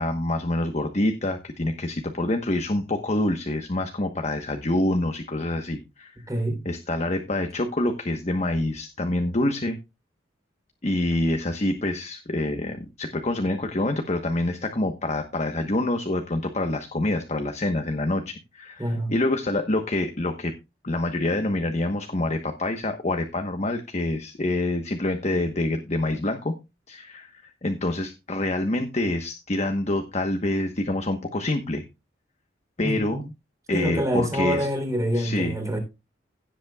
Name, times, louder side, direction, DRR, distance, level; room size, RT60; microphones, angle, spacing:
voice 1, 0.0-6.1 6.6-9.8 10.8-20.5 20.8-26.5 26.9-31.8 32.8-33.2 33.7-34.7 35.1-35.5, left 1 dB, 35° left, 1.2 m, -26 dB
voice 2, 6.3-6.6 18.8-19.1 32.8-33.2 33.7-35.8, equal, 20° right, 3.6 m, -26 dB
16.5 x 8.3 x 2.4 m
head